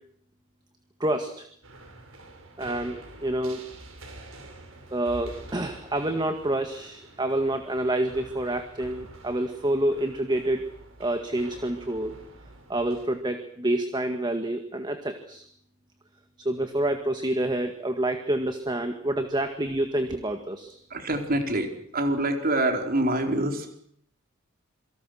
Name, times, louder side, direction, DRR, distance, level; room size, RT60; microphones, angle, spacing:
voice 1, 1.0-1.5 2.6-3.6 4.9-10.6 11.0-12.2 12.7-15.4 16.4-20.8, right 1 dB, 20° right, 6 dB, 1.9 m, -28 dB
sound 1, 1.6-13.1, right 2 dB, 80° right, 6.0 m, -47 dB
voice 2, 20.9-23.8, right 1 dB, 45° right, 4 dB, 4.3 m, -26 dB
28.0 x 24.5 x 6.5 m, 0.64 s
head